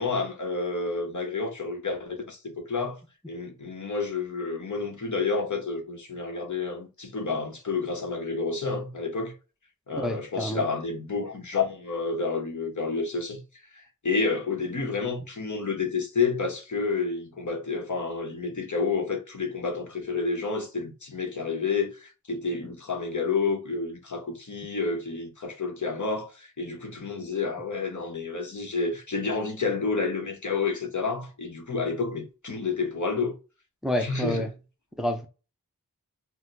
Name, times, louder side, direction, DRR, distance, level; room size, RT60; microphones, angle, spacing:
voice 1, 0.0-3.0 3.3-9.3 9.9-13.4 13.7-33.3 34.0-34.5, left 4 dB, 55° left, 1.0 m, -30 dB
voice 2, 10.0-10.6 33.8-34.5 35.0-35.3, equal, ahead, 0.5 m, -28 dB
4.1 x 2.2 x 2.5 m
wide cardioid pair, 45°, 35 cm